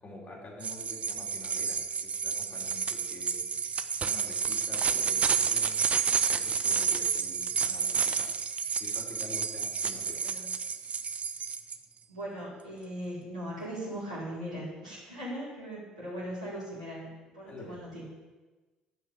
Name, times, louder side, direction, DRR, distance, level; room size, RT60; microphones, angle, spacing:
voice 1, 0.0-3.5 3.9-5.8 6.2-8.3 8.8-10.2 17.5-17.8, left 2 dB, 40° left, -2 dB, 4.0 m, -47 dB
sound 1, 0.6-11.8, right 6 dB, 35° right, 0.8 m, -30 dB
voice 2, 12.1-18.0, equal, 90° right, -8 dB, 4.3 m, -39 dB
12.0 x 5.9 x 8.5 m, 1.2 s
figure-of-eight pair, 50°, 4 cm